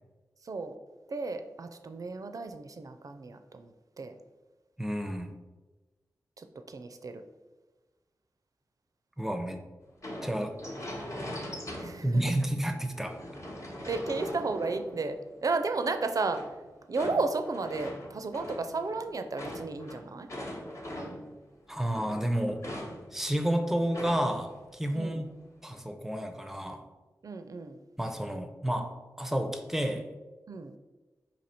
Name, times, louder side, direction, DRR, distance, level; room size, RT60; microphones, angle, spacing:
voice 1, 0.4-0.7 1.1-4.1 6.4-7.2 11.8-12.2 13.9-16.4 16.9-20.3 24.9-25.3 27.2-27.8 30.5-30.8, right 3 dB, 55° right, 8 dB, 0.5 m, -33 dB
voice 2, 4.8-5.4 9.2-9.6 10.2-10.6 12.0-13.2 21.7-22.6 23.1-25.3 25.6-26.8 28.0-30.1, right 1 dB, 5° right, 6 dB, 0.6 m, -30 dB
sound 1, 10.0-12.3 12.7-15.3 16.3-21.4 21.7-24.5 24.8-24.9 25.4-25.8, left 1 dB, 45° left, 1.0 m, -41 dB
4.2 x 2.9 x 4.3 m, 1.2 s
cardioid pair, 45°, 7 cm